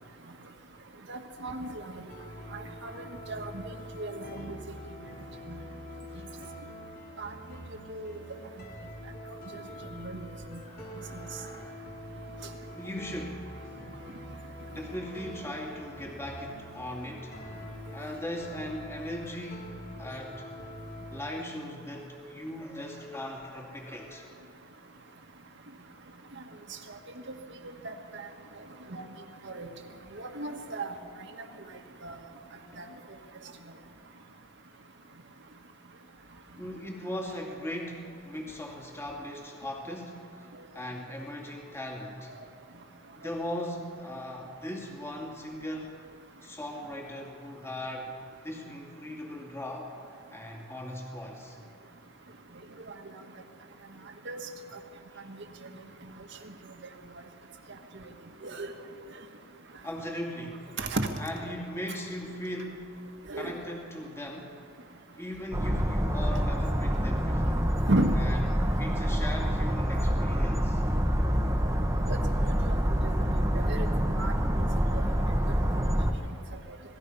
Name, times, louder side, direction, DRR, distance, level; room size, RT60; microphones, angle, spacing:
voice 1, 1.1-2.0 2.8-3.6 3.9-4.6 5.5-5.6 7.2-7.3 7.9-8.2 9.9-10.3 10.5-10.6 11.1-11.3 27.8-28.2 28.9-29.1 29.4-29.7 30.1-30.9 32.0-32.2 32.8-32.9 54.3-54.4 55.3-55.4 58.4-58.7 60.8-61.1 63.3-63.5 67.9-68.2 72.1-72.2 72.7-72.8 73.0-75.0, right 2 dB, 60° right, 5 dB, 1.9 m, -34 dB
sound 1, 2.1-21.2, equal, 45° left, 4.4 m, -44 dB
voice 2, 10.6-11.8 12.7-13.5 14.7-17.4 17.9-20.5 21.1-24.3 32.7-32.8 36.6-42.3 43.1-45.9 46.4-48.1 48.4-49.9 50.3-51.6 55.1-55.3 59.8-60.7 61.2-63.0 63.3-64.5 65.2-67.7 68.2-68.4 68.8-70.9, left 1 dB, 15° left, 0 dB, 2.6 m, -39 dB
sound 2, 65.5-76.1, equal, 15° right, 1.4 m, -26 dB
26.5 x 19.0 x 5.7 m, 2.4 s
head